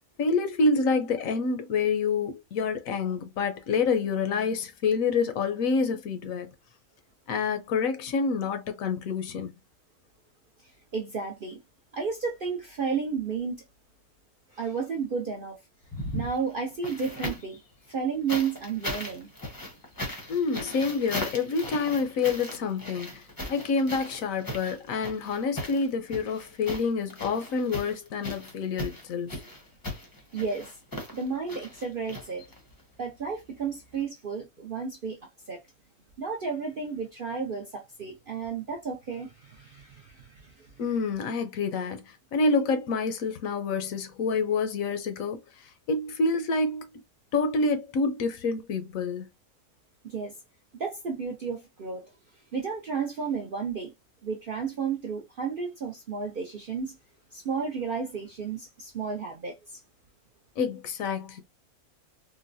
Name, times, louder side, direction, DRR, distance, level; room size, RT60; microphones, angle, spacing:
voice 1, 0.2-6.5 7.3-9.5 20.3-29.4 40.8-42.0 42.3-46.9 47.3-49.3 60.6-61.4, left 4 dB, 70° left, 1.0 m, -27 dB
voice 2, 10.9-11.6 11.9-13.6 14.5-15.6 16.1-17.6 17.9-19.3 30.3-30.7 31.1-32.4 33.0-35.6 36.2-40.7 50.0-50.3 50.8-52.1 52.5-53.9 54.2-56.9 57.3-59.8, right 5 dB, 60° right, 0.6 m, -32 dB
sound 1, 15.8-17.6 18.3-32.8 33.9-34.0, left 1 dB, 20° left, 0.6 m, -38 dB
3.9 x 2.1 x 2.5 m
omnidirectional pair, 1.6 m